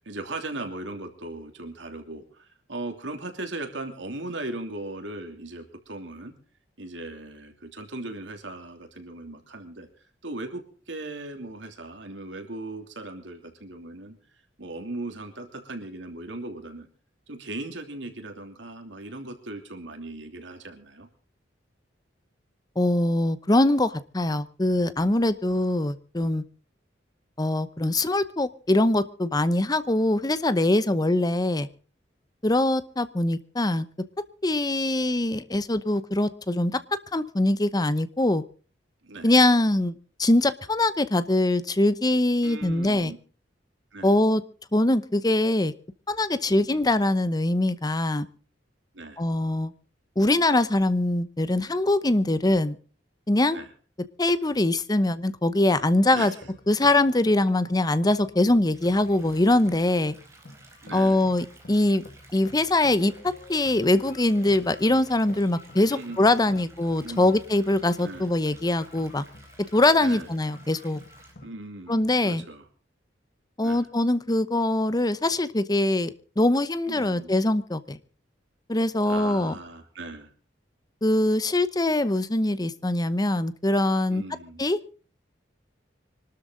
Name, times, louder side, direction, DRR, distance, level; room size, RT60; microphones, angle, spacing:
voice 1, 0.0-6.3 6.8-9.9 10.2-14.2 14.6-16.9 17.3-21.1 39.0-39.3 42.4-43.2 43.9-44.2 46.5-47.1 48.9-49.2 53.5-53.7 56.1-56.4 60.8-61.2 65.9-66.5 67.0-67.4 68.0-68.3 70.0-70.3 71.4-72.6 73.6-73.8 76.9-77.3 79.0-80.3 84.1-84.6, right 2 dB, 90° right, 5 dB, 3.0 m, -38 dB
voice 2, 22.8-26.4 27.4-31.7 32.4-33.9 34.4-36.8 37.1-38.4 39.2-43.1 44.0-44.4 44.7-45.7 46.1-48.3 49.2-49.7 50.2-52.8 53.3-53.6 54.2-56.3 56.7-60.1 60.9-62.0 62.3-69.2 69.7-71.0 71.9-72.4 73.6-78.0 78.7-79.5 81.0-84.2 84.6-84.8, left 1 dB, 20° left, 14 dB, 0.8 m, -23 dB
sound 1, 56.4-71.5, left 1 dB, 55° left, 2.1 m, -50 dB
sound 2, 58.7-71.3, right 2 dB, 15° right, 4.6 m, -54 dB
24.5 x 13.0 x 3.9 m, 0.39 s
head